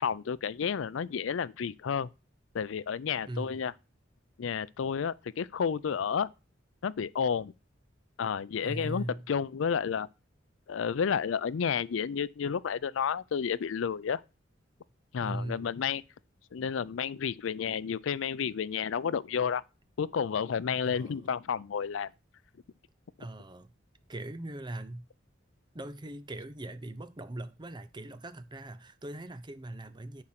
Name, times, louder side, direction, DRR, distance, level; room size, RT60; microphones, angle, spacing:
voice 1, 0.0-2.1 2.5-3.7 4.4-6.3 6.8-7.5 8.2-10.1 10.7-14.2 15.1-16.0 16.5-19.6 20.0-22.1, left 7 dB, 75° left, 0.4 m, -31 dB
voice 2, 3.3-3.7 8.6-9.3 15.2-15.7 20.8-21.3 23.2-23.7 24.1-25.1 25.7-30.2, right 1 dB, 25° right, 0.6 m, -40 dB
10.0 x 4.4 x 5.8 m
head